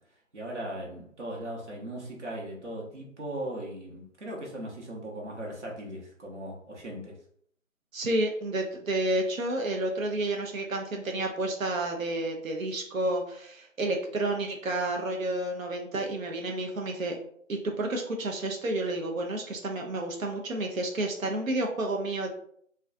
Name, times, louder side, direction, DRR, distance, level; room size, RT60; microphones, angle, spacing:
voice 1, 0.3-7.2, right 1 dB, 60° right, -2 dB, 1.0 m, -38 dB
voice 2, 7.9-17.2 17.5-22.3, right 2 dB, 80° right, 1 dB, 0.6 m, -30 dB
2.6 x 2.3 x 2.3 m, 0.64 s
figure-of-eight pair, 180°, 40 cm